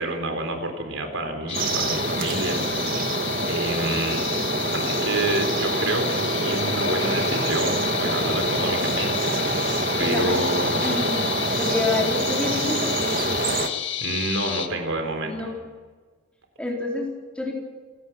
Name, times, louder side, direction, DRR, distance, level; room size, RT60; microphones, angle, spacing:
voice 1, 0.0-3.1 3.5-4.3 4.7-9.7 10.0-10.8 13.5-13.7 14.0-15.5, right 2 dB, 75° right, 5 dB, 4.3 m, -29 dB
sound 1, 1.5-14.7, left 10 dB, 60° left, 1.7 m, -30 dB
sound 2, 1.5-13.7, right 2 dB, 45° right, 1.6 m, -26 dB
voice 2, 10.0-10.4 10.8-13.0 15.2-15.5 16.6-17.5, left 2 dB, 5° left, -2 dB, 4.3 m, -28 dB
28.5 x 17.0 x 6.2 m, 1.4 s
head